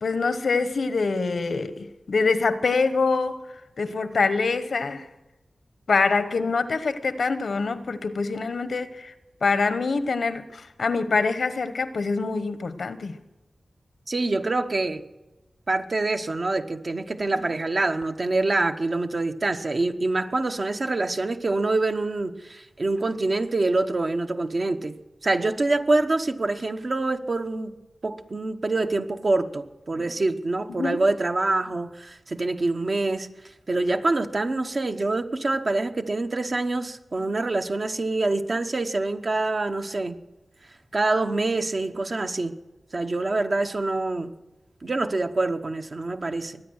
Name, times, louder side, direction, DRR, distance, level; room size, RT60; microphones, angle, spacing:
voice 1, 0.0-3.4 3.8-5.1 5.9-9.1 9.4-13.1 30.7-31.0, left 4 dB, 75° left, 0.9 m, -25 dB
voice 2, 14.1-15.0 15.7-25.0 25.2-27.7 28.0-33.3 33.7-40.2 40.9-42.6 42.9-44.3 44.8-46.6, right 2 dB, 50° right, 1.0 m, -25 dB
22.5 x 9.4 x 6.4 m
wide cardioid pair, 70°, 0 cm